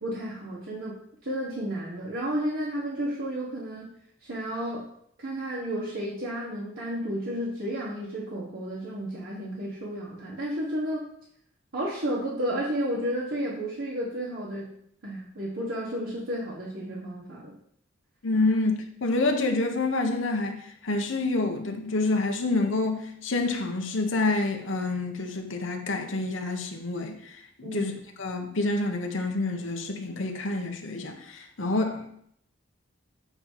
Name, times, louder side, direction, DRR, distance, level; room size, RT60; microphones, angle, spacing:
voice 1, 0.0-0.9 1.2-3.8 4.2-4.9 5.2-11.0 11.7-14.7 15.0-17.6 27.6-27.9, equal, 70° right, -7 dB, 1.6 m, -32 dB
voice 2, 18.2-20.6 20.8-27.1 27.6-27.9 28.2-32.1, left 2 dB, 75° left, 3 dB, 1.1 m, -27 dB
8.8 x 3.0 x 5.7 m, 0.68 s
head